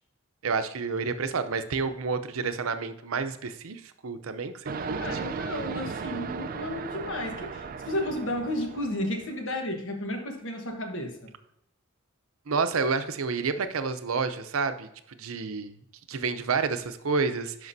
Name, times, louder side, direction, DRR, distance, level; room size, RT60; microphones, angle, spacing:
voice 1, 0.4-5.0 12.5-15.7 16.1-17.7, right 4 dB, 85° right, 10 dB, 0.6 m, -29 dB
sound 1, 4.7-9.4, right 5 dB, 45° right, 0.4 m, -36 dB
voice 2, 4.9-11.3, left 1 dB, 65° left, 3 dB, 1.3 m, -33 dB
11.0 x 5.1 x 2.7 m, 0.80 s
head